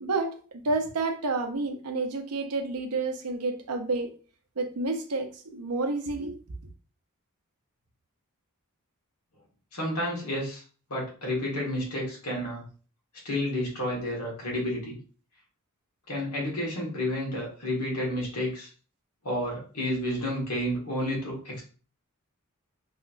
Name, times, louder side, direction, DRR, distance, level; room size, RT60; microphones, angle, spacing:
voice 1, 0.0-4.1 4.6-6.4, right 3 dB, 90° right, 5 dB, 0.7 m, -30 dB
voice 2, 9.7-10.6 10.9-12.6 13.3-15.0 16.1-18.7 19.2-21.6, left 1 dB, 85° left, -3 dB, 1.6 m, -30 dB
3.2 x 2.9 x 2.6 m, 0.39 s
head